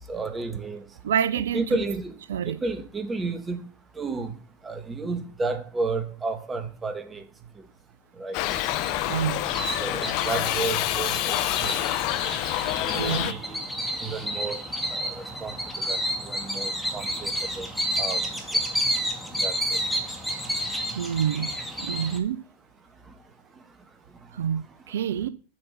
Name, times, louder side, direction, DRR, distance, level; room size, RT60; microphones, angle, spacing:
voice 1, 0.1-0.8 1.5-2.1 2.4-3.7 4.0-4.3 4.6-7.2 8.2-8.4 9.8-11.7 12.8-13.6 14.0-14.6 14.9-17.3 17.6-17.7 18.0-18.3 19.4-19.5, right 3 dB, 20° right, 1.4 m, -32 dB
voice 2, 1.0-1.6 2.3-2.6 9.1-9.4 13.0-13.3 21.0-21.5 21.8-22.4 24.3-25.3, right 8 dB, 70° right, 0.6 m, -27 dB
Shout / Livestock farm animals working animals, 8.3-13.3, left 15 dB, 50° left, 0.6 m, -27 dB
sound 1, 8.5-22.2, equal, ahead, 2.1 m, -31 dB
7.6 x 5.8 x 5.6 m
hypercardioid pair, 95°, 0 cm